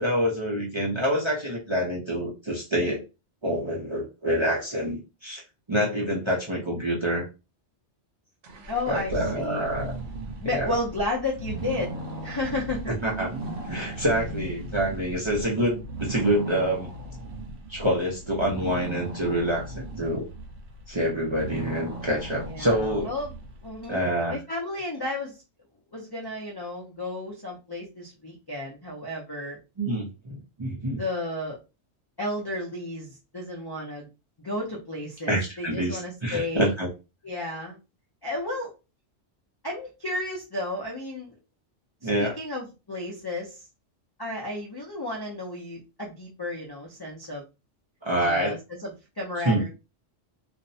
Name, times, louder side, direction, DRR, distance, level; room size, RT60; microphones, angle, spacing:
voice 1, 0.0-3.0 3.4-5.4 5.7-7.3 8.9-9.9 10.4-10.7 12.9-13.3 13.7-16.9 17.7-20.3 20.9-23.1 23.9-24.4 29.8-31.0 35.3-36.9 42.0-42.3 48.0-48.5 49.4-49.6, equal, 35° right, -4 dB, 0.5 m, -26 dB
sound 1, 8.4-23.9, right 2 dB, 75° right, 0.9 m, -37 dB
voice 2, 8.7-9.7 10.4-12.8 22.4-23.3 23.6-24.0 24.3-25.4 25.9-29.6 30.9-31.6 32.2-34.1 34.4-36.7 37.2-37.8 38.2-38.7 39.6-41.4 42.0-43.7 44.2-47.4 48.2-49.7, left 2 dB, 40° left, -3 dB, 0.3 m, -33 dB
2.5 x 2.0 x 2.6 m, 0.28 s
omnidirectional pair, 1.2 m